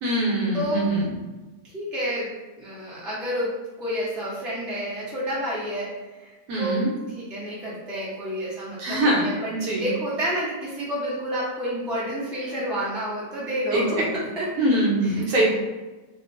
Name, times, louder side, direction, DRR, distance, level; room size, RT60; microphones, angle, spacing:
voice 1, 0.0-1.1 6.5-6.9 8.8-9.3 9.6-9.9 13.7-13.9 14.6-15.5, right 1 dB, 65° right, -3 dB, 1.1 m, -22 dB
voice 2, 0.5-0.9 1.6-2.3 2.6-6.3 6.6-14.5 15.0-15.3, equal, ahead, -8 dB, 0.5 m, -30 dB
2.9 x 2.3 x 3.7 m, 1.2 s
omnidirectional pair, 1.9 m